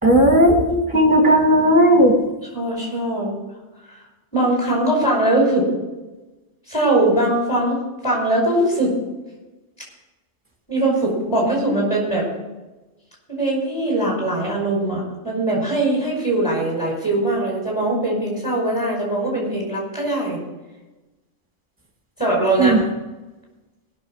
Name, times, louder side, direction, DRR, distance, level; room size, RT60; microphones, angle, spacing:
voice 1, 0.0-2.1 22.6-22.8, right 1 dB, 5° right, 1 dB, 2.1 m, -14 dB
voice 2, 2.5-3.3 4.3-5.7 6.7-8.9 10.7-12.2 13.3-20.4 22.2-22.8, right 1 dB, 15° left, -2 dB, 5.6 m, -21 dB
19.5 x 6.6 x 6.4 m, 1.1 s
omnidirectional pair, 1.3 m